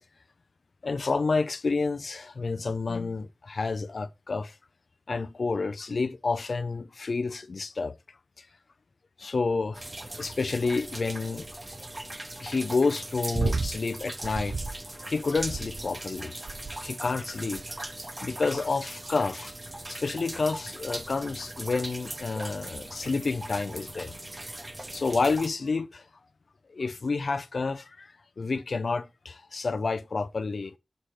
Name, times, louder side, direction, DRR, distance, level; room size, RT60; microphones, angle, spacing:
voice 1, 0.8-4.6 5.1-7.9 8.4-8.5 9.2-9.9 10.1-11.5 12.4-14.6 15.0-16.3 16.8-17.6 18.2-19.5 19.9-24.2 24.9-26.0 26.7-30.7, left 4 dB, 80° left, 0.5 m, -29 dB
sound 1, 9.7-25.5, right 1 dB, 30° right, 0.9 m, -40 dB
sound 2, 13.3-13.8 14.2-14.8 15.3-16.0 16.5-16.9 17.6-17.9 18.6-19.0 19.9-20.0, right 3 dB, 70° right, 0.4 m, -32 dB
6.5 x 5.8 x 3.3 m
wide cardioid pair, 75°, 0 cm